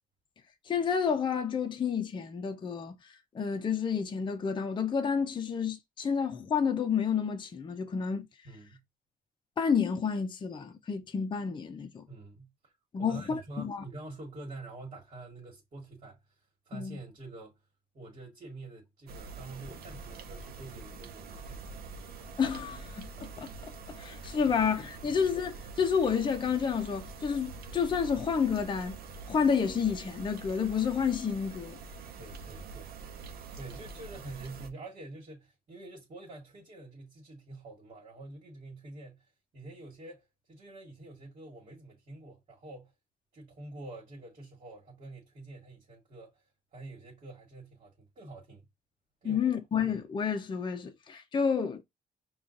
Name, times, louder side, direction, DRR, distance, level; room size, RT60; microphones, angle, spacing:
voice 1, 0.7-8.3 9.6-12.0 12.9-13.8 16.7-17.0 22.4-29.0 29.3-31.8 49.2-51.8, left 6 dB, 30° left, 0.5 m, -30 dB
voice 2, 8.5-8.8 12.1-12.7 13.0-16.2 16.7-17.5 17.9-21.7 24.4-24.6 25.0-25.3 32.2-33.2 33.5-39.3 39.5-42.9 43.3-46.4 46.7-48.7 49.2-49.5, right 2 dB, 45° right, 1.6 m, -47 dB
sound 1, 19.1-34.7, right 4 dB, 85° right, 0.6 m, -45 dB
5.5 x 2.3 x 2.4 m
cardioid pair, 120°, 15 cm